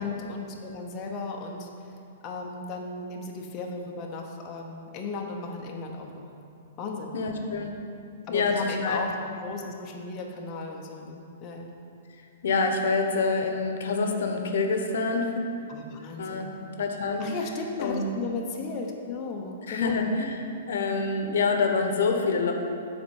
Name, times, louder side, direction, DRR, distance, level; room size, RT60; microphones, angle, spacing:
voice 1, 0.0-1.7 2.2-6.2 6.8-7.3 8.3-9.1 9.4-11.7 15.7-16.6 17.2-20.1, left 3 dB, 25° left, 0 dB, 0.7 m, -35 dB
voice 2, 7.1-7.7 8.3-8.5 8.8-9.0 12.4-15.3 16.2-16.5 16.8-17.3 17.8-18.1 19.7-20.4 20.7-22.5, left 4 dB, 75° left, 4 dB, 0.8 m, -26 dB
7.0 x 4.3 x 6.2 m, 2.5 s
hypercardioid pair, 155°, 0 cm